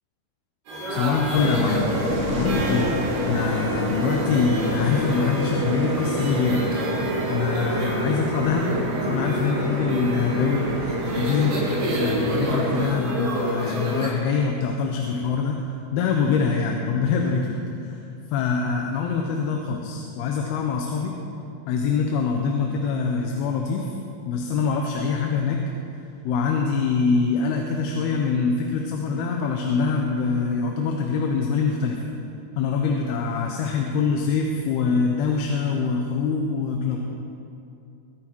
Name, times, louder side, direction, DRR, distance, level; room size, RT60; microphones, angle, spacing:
sound 1, 0.7-14.1, right 1 dB, 90° right, 4.5 m, -32 dB
voice 1, 0.9-6.6 7.3-8.7 9.1-10.7 11.1-11.7 12.0-15.6 15.9-18.0 18.3-21.2 21.7-23.9 24.3-25.6 26.2-32.0 32.6-37.0, left 5 dB, 90° left, 2 dB, 2.9 m, -24 dB
sound 2, 1.3-12.9, right 1 dB, 50° right, 2.6 m, -27 dB
23.0 x 8.9 x 4.6 m, 2.6 s
omnidirectional pair, 4.4 m